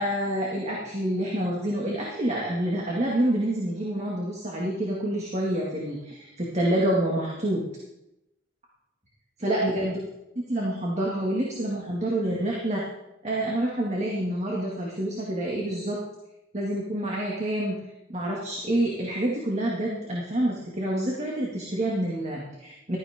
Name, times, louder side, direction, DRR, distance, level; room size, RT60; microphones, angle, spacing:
voice 1, 0.0-7.6 9.4-9.9 10.5-12.8 13.2-16.0 16.5-17.8 18.1-23.0, right 1 dB, 35° right, -3 dB, 2.0 m, -27 dB
15.0 x 12.5 x 3.6 m, 0.90 s
head